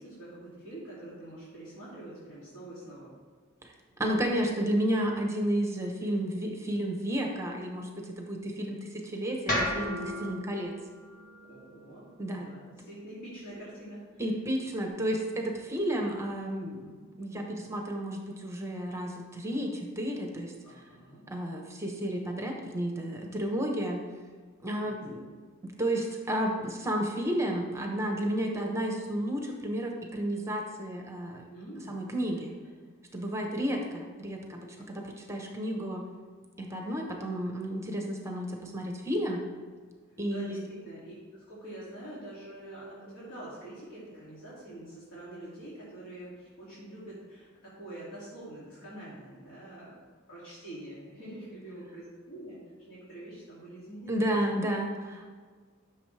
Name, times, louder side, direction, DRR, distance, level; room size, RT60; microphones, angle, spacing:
voice 1, 0.0-3.1 10.1-10.4 11.4-14.2 14.9-15.3 16.8-17.0 20.6-21.2 24.8-25.0 31.5-32.0 34.7-34.9 40.3-50.0 50.3-54.4, right 1 dB, 80° left, -8 dB, 2.7 m, -45 dB
voice 2, 4.0-10.7 12.2-12.5 14.2-20.5 21.3-24.0 24.6-25.3 25.6-31.4 31.9-32.6 33.1-36.0 36.6-39.4 40.2-40.7 54.1-55.4, right 1 dB, 15° right, 1 dB, 1.0 m, -32 dB
sound 1, 9.5-13.6, left 1 dB, 40° left, 1.6 m, -36 dB
11.5 x 6.4 x 3.4 m, 1.5 s
head